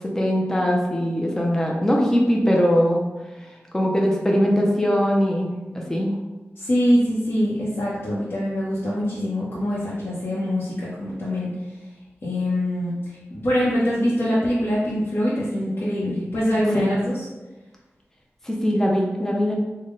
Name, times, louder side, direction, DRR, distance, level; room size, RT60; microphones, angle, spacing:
voice 1, 0.0-3.0 3.7-5.5 5.9-6.2 16.7-16.9 18.4-19.5, equal, 10° left, -2 dB, 0.5 m, -21 dB
voice 2, 6.6-11.5 12.2-12.9 13.3-17.2, equal, 55° left, -9 dB, 0.8 m, -23 dB
3.6 x 2.2 x 3.7 m, 1.1 s
wide cardioid pair, 95°, 5 cm